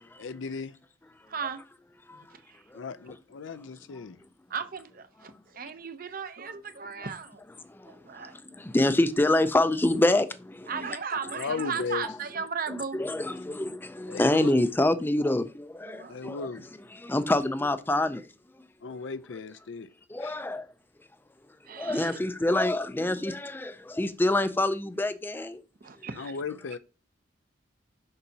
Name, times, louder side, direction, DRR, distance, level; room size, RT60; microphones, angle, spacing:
voice 1, 0.2-0.7 2.7-4.2 11.3-12.1 14.1-14.6 16.1-16.6 18.8-19.9 20.2-20.4 26.2-26.8, left 5 dB, 75° left, 0.5 m, -36 dB
voice 2, 1.3-1.6 2.1-2.6 4.5-7.6 7.8-8.4 10.7-13.0 15.9-16.4 18.8-18.9 21.7-22.1 25.8-26.3, right 6 dB, 50° right, 0.7 m, -36 dB
voice 3, 7.7-10.9 12.9-16.5 17.1-18.2 20.1-20.7 21.7-25.6, left 1 dB, 10° left, 0.4 m, -26 dB
6.7 x 5.6 x 2.8 m
head